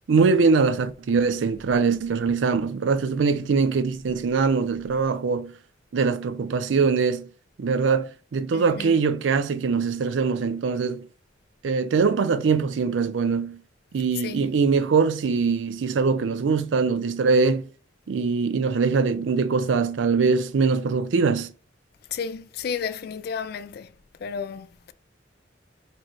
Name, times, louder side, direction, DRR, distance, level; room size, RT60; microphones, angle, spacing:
voice 1, 0.1-5.5 5.9-7.3 7.6-11.1 11.6-13.6 13.9-17.7 18.1-21.5, right 5 dB, 80° right, 0.4 m, -22 dB
voice 2, 8.5-9.0 14.2-14.5 22.1-23.9 24.2-24.9, left 6 dB, 55° left, 0.3 m, -32 dB
4.2 x 3.0 x 3.0 m
head